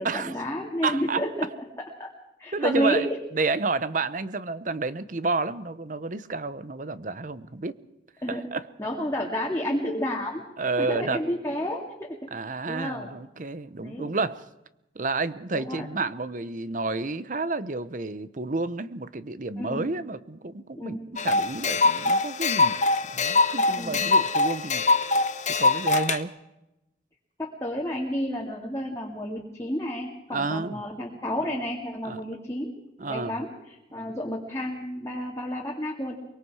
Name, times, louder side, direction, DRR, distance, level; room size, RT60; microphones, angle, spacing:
voice 1, 0.0-1.5 2.0-2.1 2.4-3.2 8.2-8.4 8.8-10.4 10.8-13.1 13.7-14.1 15.5-15.9 19.6-19.8 20.8-21.1 23.8-24.0 27.4-32.7 33.1-36.2, equal, 15° left, -2 dB, 2.2 m, -31 dB
voice 2, 0.8-1.2 2.5-3.1 3.4-7.8 8.3-8.6 10.6-11.2 12.3-14.4 15.0-22.8 23.1-24.8 25.6-26.3 30.3-30.8 32.0-32.2 33.0-33.4, right 3 dB, 45° right, 14 dB, 0.9 m, -30 dB
sound 1, 21.2-26.2, left 3 dB, 40° left, 1.0 m, -23 dB
23.5 x 23.0 x 4.8 m, 0.89 s
head